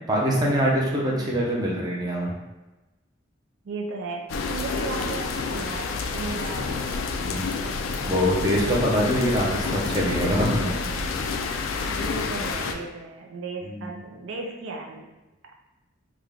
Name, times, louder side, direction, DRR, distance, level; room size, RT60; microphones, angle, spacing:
voice 1, 0.1-2.3 7.2-7.5 8.0-10.7 13.6-13.8, equal, 20° right, -3 dB, 0.6 m, -24 dB
voice 2, 3.6-7.1 11.9-15.1, right 3 dB, 65° right, 1 dB, 0.4 m, -36 dB
sound 1, 4.3-12.7, left 4 dB, 70° left, 0.3 m, -29 dB
3.6 x 2.2 x 3.4 m, 1.1 s
head